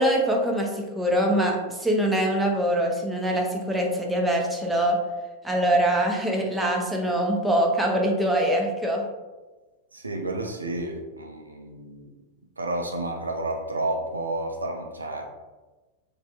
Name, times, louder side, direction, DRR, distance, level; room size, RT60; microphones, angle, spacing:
voice 1, 0.0-5.0 5.4-9.0, right 1 dB, 5° right, 0 dB, 0.5 m, -23 dB
voice 2, 9.9-12.1 12.6-15.3, right 2 dB, 80° right, 2 dB, 0.3 m, -31 dB
3.2 x 2.1 x 2.9 m, 1.2 s
figure-of-eight pair, 90°, 0 cm